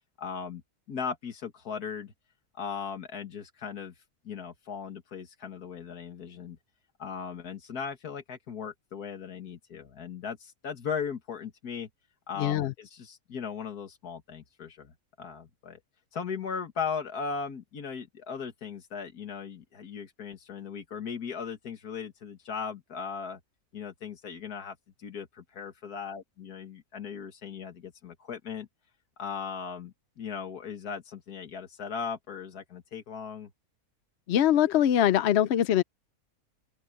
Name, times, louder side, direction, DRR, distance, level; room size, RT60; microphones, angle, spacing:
voice 1, 0.2-0.6 0.9-2.1 2.6-3.9 4.3-6.6 7.0-11.9 12.3-14.9 15.2-15.8 16.1-23.4 23.7-28.7 29.2-33.5, left 6 dB, 90° left, 2.3 m, -38 dB
voice 2, 12.4-12.7 34.3-35.8, left 11 dB, 65° left, 0.7 m, -23 dB
omnidirectional pair, 1.6 m